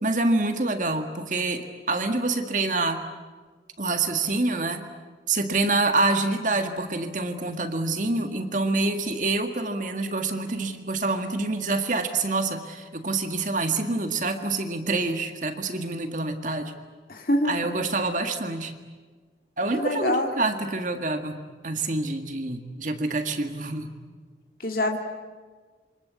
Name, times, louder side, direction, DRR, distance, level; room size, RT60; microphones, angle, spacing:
voice 1, 0.0-3.0 3.8-4.9 5.3-16.7 17.4-18.7 19.6-23.9, right 3 dB, 45° right, 6 dB, 1.9 m, -26 dB
voice 2, 17.1-17.5 19.7-20.3 24.6-25.0, left 1 dB, 50° left, 3 dB, 2.3 m, -25 dB
27.5 x 25.0 x 8.3 m, 1.4 s
head